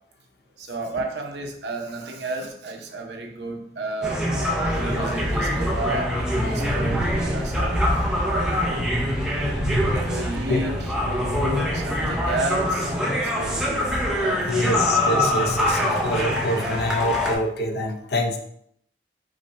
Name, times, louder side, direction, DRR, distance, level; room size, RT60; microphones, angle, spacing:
voice 1, 0.6-7.9 8.2-8.9 10.0-13.9 14.2-15.0, right 2 dB, 80° right, 2 dB, 0.8 m, -32 dB
sound 1, 4.0-17.4, left 1 dB, 5° right, 0.5 m, -24 dB
Train, 4.4-12.3, right 1 dB, 85° left, 1.5 m, -32 dB
voice 2, 14.5-18.4, left 1 dB, 65° left, 3 dB, 0.6 m, -25 dB
5.0 x 2.2 x 4.0 m, 0.71 s
head